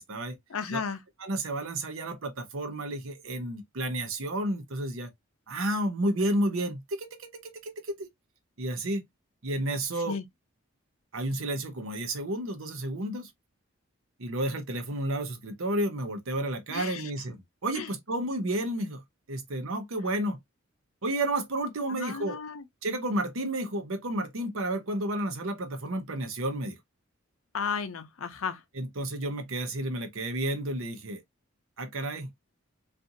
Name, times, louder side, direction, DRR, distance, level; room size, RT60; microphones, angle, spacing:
voice 1, 0.5-1.0 10.1-10.2 16.7-17.1 17.7-17.9 21.9-22.6 27.5-28.6, left 5 dB, 75° left, 0.6 m, -34 dB
voice 2, 1.2-5.1 5.5-8.1 8.6-9.0 9.4-10.2 11.1-13.3 14.2-17.4 17.6-19.0 19.3-20.4 21.0-22.4 22.8-26.8 28.8-31.2 31.8-32.3, right 1 dB, 70° right, 0.8 m, -31 dB
2.7 x 2.5 x 2.5 m
head